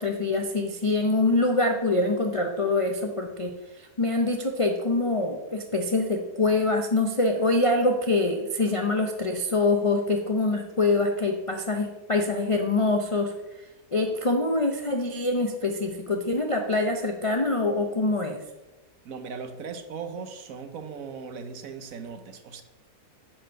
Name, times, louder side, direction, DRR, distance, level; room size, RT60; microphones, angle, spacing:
voice 1, 0.0-13.3 13.6-18.4, left 2 dB, 50° left, 3 dB, 0.4 m, -25 dB
voice 2, 19.0-22.6, right 5 dB, 65° right, 9 dB, 1.1 m, -38 dB
10.0 x 4.3 x 6.5 m, 1.1 s
omnidirectional pair, 1.7 m